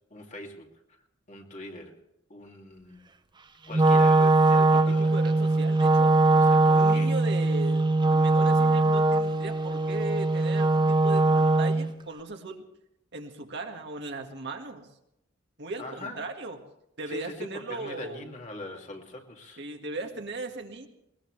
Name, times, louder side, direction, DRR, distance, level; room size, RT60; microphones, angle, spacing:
voice 1, 0.1-0.7 1.3-2.0 2.3-3.0 3.7-5.1 6.3-7.1 15.8-16.2 17.1-19.6, left 1 dB, 40° left, 1 dB, 2.5 m, -41 dB
Wind instrument woodwind instrument, 3.7-11.9, right 2 dB, 25° right, 0.7 m, -21 dB
voice 2, 4.7-6.2 6.7-12.7 13.1-14.9 15.6-16.6 17.0-18.3 19.6-20.9, right 2 dB, 60° right, 3 dB, 1.9 m, -37 dB
21.0 x 21.0 x 3.3 m, 0.81 s
head